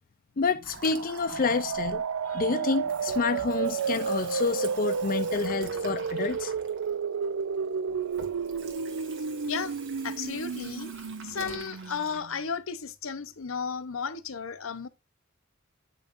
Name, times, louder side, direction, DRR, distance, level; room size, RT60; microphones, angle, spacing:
voice 1, 0.4-6.5, left 4 dB, 40° left, 0.5 m, -29 dB
Water tap faucet / Sink (filling or washing), 0.6-2.4 2.7-12.2, right 4 dB, 60° right, 2.2 m, -46 dB
sound 1, 0.7-12.4, right 6 dB, 85° right, 0.5 m, -32 dB
voice 2, 9.5-9.8 10.0-14.9, left 6 dB, 70° left, 0.9 m, -34 dB
9.2 x 6.9 x 2.6 m
head